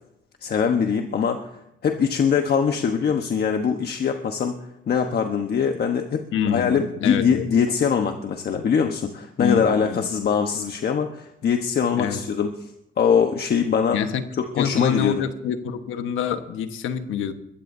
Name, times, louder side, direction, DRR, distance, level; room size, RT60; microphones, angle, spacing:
voice 1, 0.4-1.5 1.8-4.6 4.9-12.5 13.0-14.0 14.5-15.2, left 6 dB, 55° left, 1.2 m, -22 dB
voice 2, 6.3-7.4 9.4-10.1 11.9-12.2 13.9-14.2 14.6-17.3, left 8 dB, 85° left, 1.3 m, -26 dB
22.0 x 15.0 x 2.7 m
cardioid pair, 90°, 20 cm